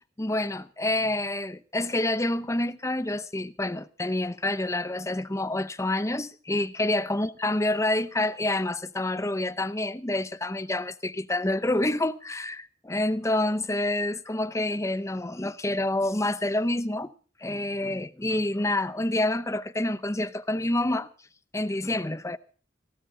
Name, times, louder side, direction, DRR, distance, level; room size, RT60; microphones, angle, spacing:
voice 1, 0.2-17.1 17.4-21.1 21.5-22.4, left 1 dB, 15° left, 0.7 m, -28 dB
19.0 x 15.0 x 3.9 m
head